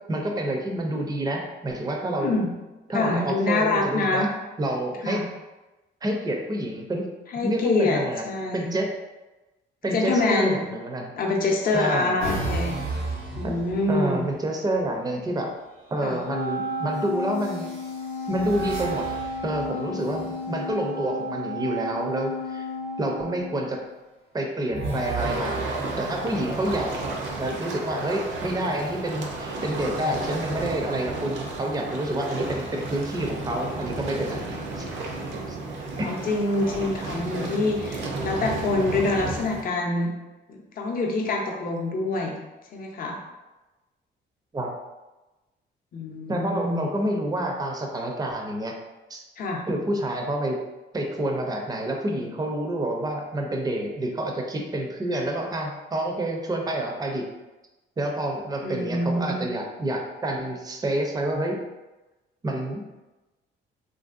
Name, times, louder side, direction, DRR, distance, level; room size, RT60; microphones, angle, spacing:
voice 1, 0.0-2.3 2.9-4.3 4.6-5.3 6.0-7.1 7.4-8.2 8.5-8.9 9.8-11.1 11.7-12.2 13.4-13.6 13.9-15.5 15.9-17.7 18.3-19.2 19.4-22.7 23.0-23.8 24.3-25.7 26.0-26.9 27.3-34.8 35.5-35.6 36.0-36.1 44.5-44.7 46.3-48.7 49.1-49.2 49.7-50.6 50.9-57.3 58.0-61.6 62.4-62.8, right 1 dB, 20° right, 1 dB, 0.5 m, -28 dB
voice 2, 2.9-4.3 5.0-5.2 7.3-8.0 8.3-8.7 9.9-10.6 11.2-12.7 13.4-14.2 16.0-16.2 36.0-40.1 40.5-42.3 42.7-43.2 45.9-46.9 49.4-49.6 58.6-59.5, left 2 dB, 45° left, 0 dB, 0.6 m, -25 dB
sound 1, 12.2-14.4 15.7-16.2 17.3-20.7 24.7-27.6 28.4-30.2, right 2 dB, 85° right, 1.1 m, -35 dB
Wind instrument woodwind instrument, 16.3-23.9, left 1 dB, 90° left, 0.5 m, -33 dB
sound 2, 25.2-39.6, right 3 dB, 70° right, 0.6 m, -33 dB
3.1 x 2.6 x 2.4 m, 1.1 s
cardioid pair, 90°, 20 cm